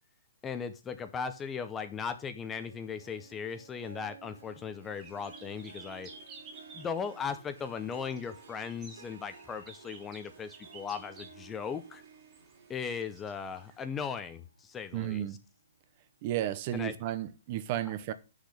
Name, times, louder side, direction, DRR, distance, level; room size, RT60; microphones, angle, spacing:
voice 1, 0.4-6.1 6.7-12.0 12.7-15.3 16.7-16.9, left 6 dB, 10° left, 0.6 m, -38 dB
Harp, 2.5-15.2 15.6-16.0 16.5-16.6, right 6 dB, 80° right, 1.7 m, -55 dB
sound 1, 5.0-13.8, right 4 dB, 15° right, 2.4 m, -54 dB
voice 2, 14.9-15.4 16.2-18.1, right 13 dB, 30° right, 0.7 m, -33 dB
8.2 x 6.6 x 4.8 m
hypercardioid pair, 170°, 0 cm